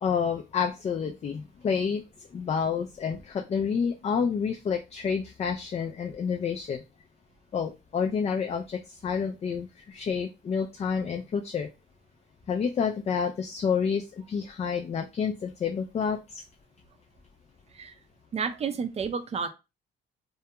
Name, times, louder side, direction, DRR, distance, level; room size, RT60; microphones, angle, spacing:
voice 1, 0.0-2.0 2.3-6.8 7.5-11.7 12.5-16.4, left 6 dB, 35° left, 3 dB, 0.3 m, -29 dB
voice 2, 18.3-19.5, right 6 dB, 30° right, 7 dB, 0.4 m, -31 dB
2.2 x 2.2 x 2.8 m, 0.27 s
cardioid pair, 90°, 20 cm